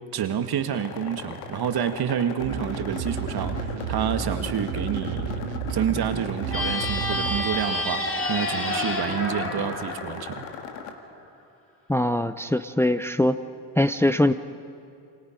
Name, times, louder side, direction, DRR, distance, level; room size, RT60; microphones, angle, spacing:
voice 1, 0.1-10.5, right 9 dB, 50° right, 8 dB, 1.8 m, -28 dB
sound 1, 0.7-10.9, left 7 dB, 80° left, 2.0 m, -38 dB
sound 2, 2.4-7.4, right 7 dB, 80° right, 1.7 m, -32 dB
sound 3, 6.5-10.9, left 1 dB, 25° left, 7.1 m, -29 dB
voice 2, 11.9-13.4 13.8-14.3, left 1 dB, 5° left, 10 dB, 0.7 m, -22 dB
28.5 x 26.0 x 5.2 m, 2.7 s
hypercardioid pair, 55°, 48 cm